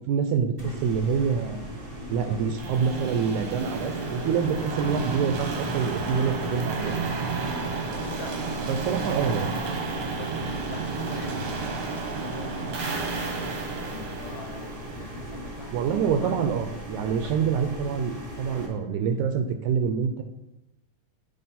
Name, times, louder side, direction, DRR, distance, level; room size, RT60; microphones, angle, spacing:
voice 1, 0.1-1.7 2.1-7.0 8.7-9.5 15.7-20.2, right 6 dB, 80° right, 7 dB, 1.9 m, -26 dB
sound 1, 0.6-18.7, right 1 dB, 45° right, 0.6 m, -39 dB
voice 2, 2.0-2.4 7.4-9.0 9.9-16.4 17.6-17.8, left 5 dB, 75° left, 3 dB, 1.8 m, -43 dB
sound 2, 2.6-15.5, right 4 dB, 65° right, 1.4 m, -32 dB
9.3 x 5.0 x 4.2 m, 0.95 s
omnidirectional pair, 3.7 m